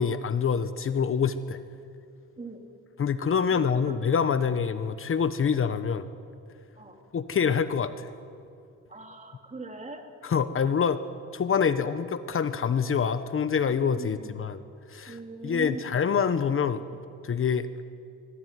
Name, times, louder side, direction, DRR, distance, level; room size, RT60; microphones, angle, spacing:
voice 1, 0.0-1.6 3.0-6.1 7.1-8.1 10.2-11.0 11.3-14.6 14.9-16.8 17.2-17.7, left 6 dB, 45° left, 11 dB, 1.1 m, -26 dB
voice 2, 3.5-3.9 6.8-7.0 8.9-10.0 14.0-14.6 15.1-16.1, right 2 dB, 25° right, 3 dB, 3.7 m, -41 dB
24.5 x 21.0 x 9.5 m, 2.4 s
cardioid pair, 90°, 30 cm